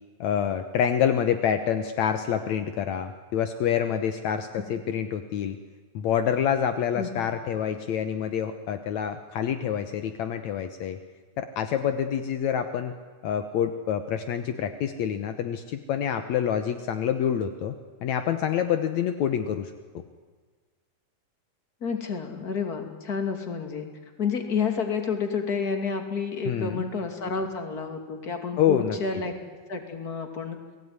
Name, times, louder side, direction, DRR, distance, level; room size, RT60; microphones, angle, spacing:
voice 1, 0.2-5.6 5.9-11.0 11.4-12.9 13.2-17.7 18.0-20.0 26.5-26.8 28.6-29.0, left 8 dB, 70° left, 9 dB, 2.3 m, -27 dB
voice 2, 21.8-23.9 24.2-29.3 29.7-30.6, left 5 dB, 30° left, 5 dB, 3.0 m, -30 dB
29.5 x 20.0 x 9.7 m, 1.4 s
omnidirectional pair, 3.5 m